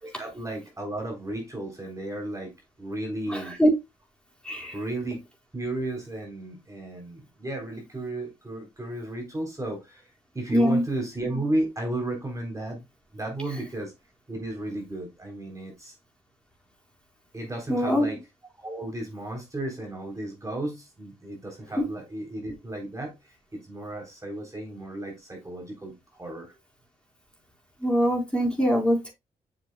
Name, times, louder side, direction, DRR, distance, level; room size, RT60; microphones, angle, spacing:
voice 1, 0.0-2.5 2.8-3.6 4.7-5.2 5.5-10.1 10.3-12.8 13.1-13.9 14.3-15.9 17.3-18.2 18.6-23.1 23.5-25.9 26.2-26.5, right 1 dB, 20° right, 3.7 m, -33 dB
voice 2, 3.3-3.7 4.4-4.8 10.5-10.8 17.7-18.1 21.8-21.9 27.8-29.1, equal, 5° left, 4.3 m, -23 dB
7.6 x 6.7 x 2.3 m
supercardioid pair, 50°, 15 cm